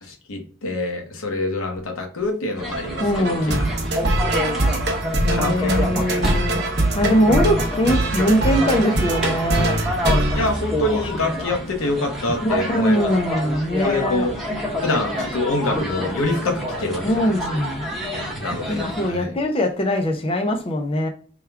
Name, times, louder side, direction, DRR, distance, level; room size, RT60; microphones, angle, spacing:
voice 1, 0.0-3.5 5.3-5.9 10.4-13.0 13.8-14.3 14.8-17.4 18.4-19.3, left 2 dB, 85° left, 0.8 m, -26 dB
sound 1, 2.6-19.1, left 1 dB, ahead, 0.8 m, -28 dB
sound 2, 2.7-11.3, right 1 dB, 55° right, 0.8 m, -23 dB
voice 2, 3.0-3.7 5.2-9.8 12.4-14.3 17.0-17.9 18.7-21.1, equal, 25° left, 0.4 m, -22 dB
3.5 x 2.3 x 4.4 m
head